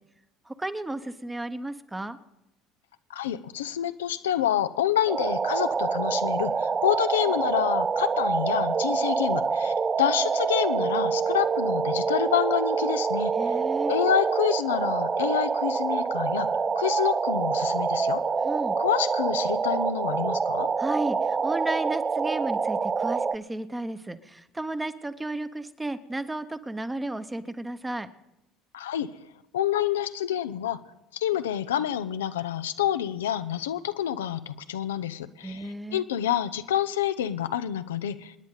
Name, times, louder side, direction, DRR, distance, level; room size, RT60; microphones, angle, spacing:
voice 1, 0.5-2.2 13.3-13.9 18.4-18.8 20.8-28.1 35.4-36.0, right 2 dB, 15° right, 11 dB, 1.0 m, -33 dB
voice 2, 3.1-13.6 13.9-18.2 18.8-20.7 28.7-29.1 29.5-30.8 31.1-38.4, left 10 dB, 85° left, 11 dB, 0.5 m, -28 dB
sound 1, 5.1-23.4, right 5 dB, 30° right, 0.5 m, -26 dB
27.0 x 9.6 x 4.0 m, 0.89 s
hypercardioid pair, 70°, 0 cm